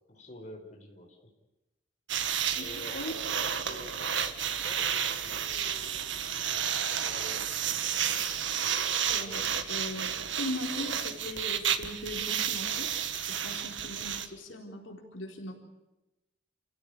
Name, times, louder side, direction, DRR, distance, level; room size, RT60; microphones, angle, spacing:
voice 1, 0.1-1.2 2.5-6.1 6.9-8.1, equal, 40° left, 1 dB, 4.8 m, -49 dB
sound 1, 2.1-14.3, right 8 dB, 80° right, 1.7 m, -31 dB
voice 2, 2.6-3.1 9.1-12.9 13.3-15.5, left 1 dB, 90° left, 2 dB, 4.1 m, -39 dB
29.0 x 16.0 x 8.5 m, 0.97 s
head